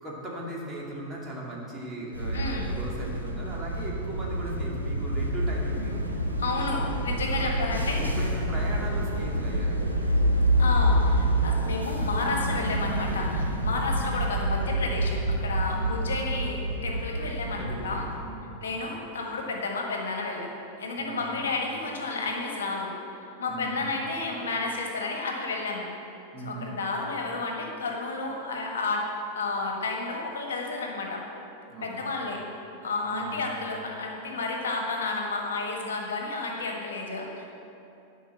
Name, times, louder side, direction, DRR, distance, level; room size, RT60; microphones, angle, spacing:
voice 1, 0.0-6.0 7.3-7.5 8.0-10.1 13.8-14.2 15.7-16.0 17.6-17.9 18.2-18.6 21.0-21.4 23.4-23.8 26.3-26.7 31.7-32.1 33.0-33.4, right 1 dB, 20° right, -4 dB, 2.5 m, -38 dB
sound 1, 2.1-18.2, right 1 dB, 85° right, 1.1 m, -27 dB
voice 2, 2.3-2.7 6.4-8.2 10.6-18.1 18.6-20.5 20.8-22.9 23.4-25.9 26.4-29.1 29.3-31.2 31.8-32.4 32.8-37.5, left 3 dB, 65° left, 1 dB, 1.4 m, -31 dB
11.5 x 5.5 x 7.4 m, 2.8 s
figure-of-eight pair, 90°, 0 cm